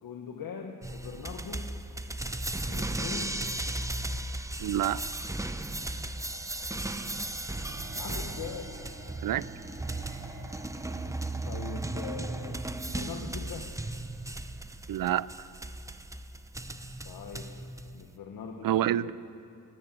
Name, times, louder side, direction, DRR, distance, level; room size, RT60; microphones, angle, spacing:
voice 1, 0.0-1.7 2.7-3.4 7.9-8.7 11.4-12.6 12.9-13.7 17.0-17.5 17.9-19.1, left 6 dB, 80° left, 3 dB, 1.6 m, -41 dB
sound 1, 0.8-18.1, right 2 dB, 10° right, 0.8 m, -36 dB
voice 2, 4.6-5.0 9.2-9.4 14.9-15.3 18.6-19.1, right 12 dB, 70° right, 18 dB, 0.6 m, -27 dB
sound 2, 7.5-12.9, right 2 dB, 35° right, 5.7 m, -47 dB
21.0 x 18.5 x 7.8 m, 2.6 s
cardioid pair, 105°, 35 cm